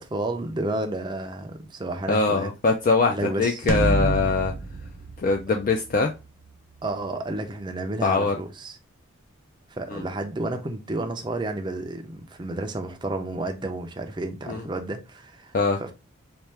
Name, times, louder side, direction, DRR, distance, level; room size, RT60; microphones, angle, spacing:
voice 1, 0.0-2.5 3.0-3.6 6.8-8.8 9.7-15.5 15.8-15.9, right 2 dB, 20° right, 0.4 m, -31 dB
voice 2, 2.1-4.5 5.2-6.1 8.0-8.4 9.9-10.0 14.5-14.6 15.5-15.8, left 4 dB, 40° left, 0.3 m, -22 dB
sound 1, 3.7-6.2, right 2 dB, 75° right, 0.6 m, -27 dB
4.2 x 2.3 x 3.3 m
head